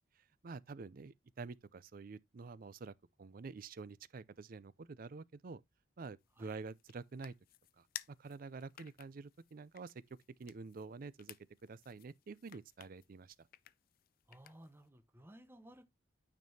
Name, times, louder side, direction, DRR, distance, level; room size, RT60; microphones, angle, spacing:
voice 1, 0.4-2.9 3.2-5.6 6.0-7.3 7.8-9.9 10.4-11.3 11.6-13.3, right 4 dB, 50° right, 0.4 m, -48 dB
sound 1, 6.2-14.9, left 13 dB, 50° left, 0.4 m, -56 dB
voice 2, 14.3-15.9, equal, 10° right, 0.8 m, -56 dB
9.3 x 5.3 x 2.7 m
head